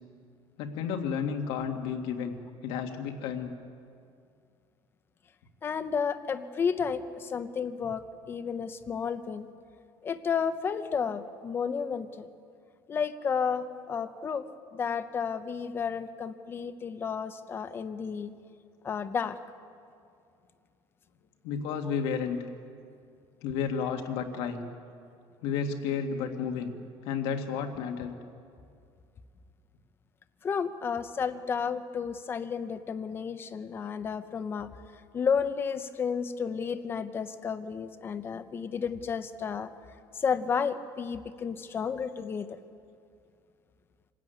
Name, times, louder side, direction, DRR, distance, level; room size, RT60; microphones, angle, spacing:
voice 1, 0.6-2.3 2.6-3.5 21.4-22.4 23.4-24.7 25.4-26.7 27.0-28.2, left 6 dB, 80° left, 4 dB, 2.0 m, -32 dB
voice 2, 5.6-9.5 10.0-12.3 12.9-14.5 14.7-18.3 18.8-19.4 30.4-34.7 35.1-39.7 40.1-42.6, left 6 dB, 25° left, 11 dB, 0.8 m, -32 dB
25.5 x 13.5 x 9.3 m, 2.4 s
cardioid pair, 175°, 9 cm